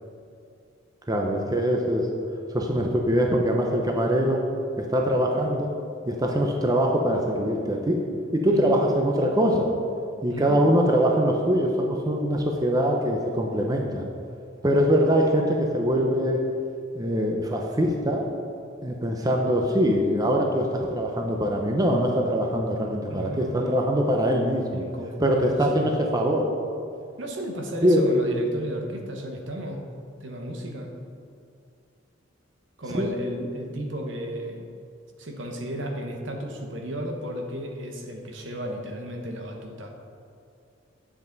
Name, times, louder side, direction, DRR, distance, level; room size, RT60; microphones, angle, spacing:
voice 1, 1.1-2.1 2.5-4.4 4.8-5.7 6.1-8.0 8.3-9.7 10.2-14.0 14.6-16.4 16.9-18.3 18.8-24.8 25.2-26.5 27.8-28.0 32.9-33.1, equal, 20° right, 1 dB, 0.6 m, -23 dB
voice 2, 8.5-8.8 10.3-10.7 23.1-23.9 24.7-25.9 27.2-29.8 30.2-31.0 32.8-34.7 35.2-39.9, equal, 65° right, 3 dB, 1.1 m, -34 dB
9.7 x 7.5 x 4.0 m, 2.5 s
head